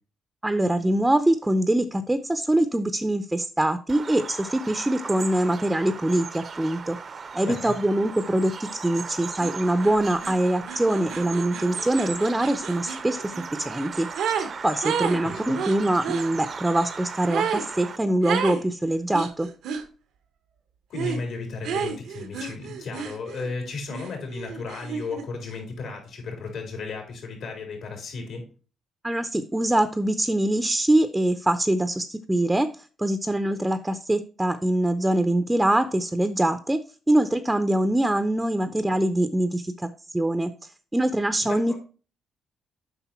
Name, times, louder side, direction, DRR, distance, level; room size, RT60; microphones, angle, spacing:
voice 1, 0.4-7.0 7.3-14.1 14.6-19.5 29.0-32.7 33.0-36.8 37.1-40.5 40.9-41.7, right 1 dB, 10° right, 9 dB, 0.7 m, -23 dB
Bird vocalization bird call bird song, 3.9-18.0, right 5 dB, 45° right, 0.7 m, -37 dB
voice 2, 7.4-7.8 15.1-15.6 20.9-28.5 41.4-41.8, left 4 dB, 70° left, 2 dB, 3.6 m, -34 dB
sound 1, 9.4-9.5 9.8-14.5 14.8-16.3 17.3-17.7 18.2-18.6 19.1-19.9 20.9-21.2 21.6-23.5 23.9-25.3, right 7 dB, 80° right, 1.0 m, -31 dB
8.1 x 5.3 x 4.4 m, 0.37 s
cardioid pair, 90°, 0 cm